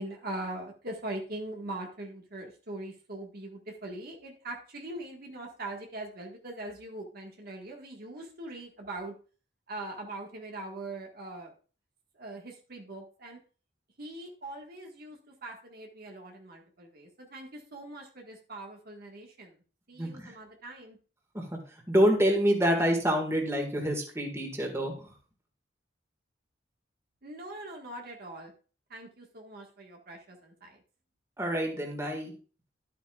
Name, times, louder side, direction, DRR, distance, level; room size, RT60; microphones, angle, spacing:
voice 1, 0.0-9.1 9.7-11.5 12.1-13.4 14.0-19.5 19.9-21.0 27.2-28.5 28.9-30.8, right 2 dB, 55° right, 1 dB, 1.6 m, -41 dB
voice 2, 20.0-20.3 21.3-21.4 21.9-25.1 31.4-32.3, equal, 15° right, 1 dB, 1.8 m, -27 dB
12.0 x 8.3 x 2.4 m, 0.37 s
head